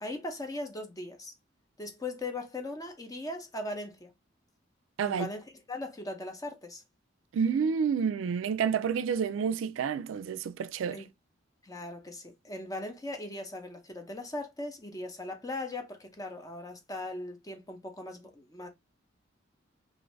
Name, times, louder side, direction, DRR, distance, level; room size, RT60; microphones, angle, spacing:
voice 1, 0.0-1.3 1.8-4.1 5.0-6.8 10.9-11.1 11.6-18.7, left 2 dB, 20° left, 0.6 m, -39 dB
voice 2, 5.0-5.3 7.3-11.0, right 6 dB, 80° right, 0.3 m, -29 dB
2.6 x 2.6 x 3.1 m
head